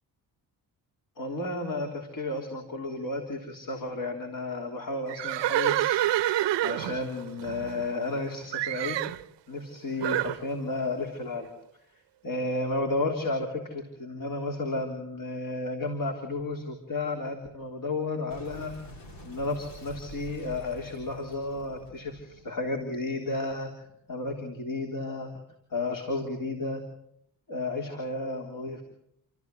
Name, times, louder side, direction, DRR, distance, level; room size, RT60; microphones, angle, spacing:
voice 1, 1.2-9.0 9.5-11.5 12.2-18.7 19.2-25.3 25.7-26.8 27.5-28.8, left 2 dB, 50° left, 3 dB, 3.5 m, -32 dB
Livestock farm animals working animals, 5.1-8.2 8.5-9.2 10.0-10.4, right 14 dB, 80° right, 0.8 m, -28 dB
Boom, 18.3-23.5, equal, 80° left, 3.9 m, -47 dB
29.5 x 13.5 x 7.8 m, 0.75 s
cardioid pair, 65°, 42 cm